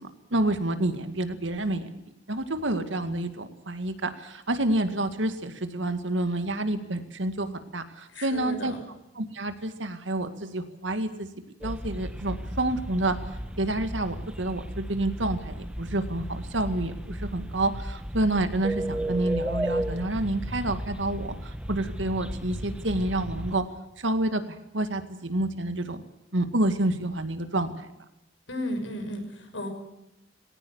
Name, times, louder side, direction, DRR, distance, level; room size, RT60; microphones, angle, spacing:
voice 1, 0.0-1.9 2.3-8.7 9.2-11.3 11.6-13.2 13.6-23.6 24.0-26.0 26.3-27.9, right 1 dB, 85° right, 9 dB, 2.1 m, -28 dB
voice 2, 8.1-8.9 28.5-29.7, left 1 dB, 85° left, 4 dB, 6.3 m, -34 dB
sound 1, 11.6-23.6, equal, 5° right, 1.3 m, -34 dB
20.0 x 17.5 x 8.1 m, 0.94 s
head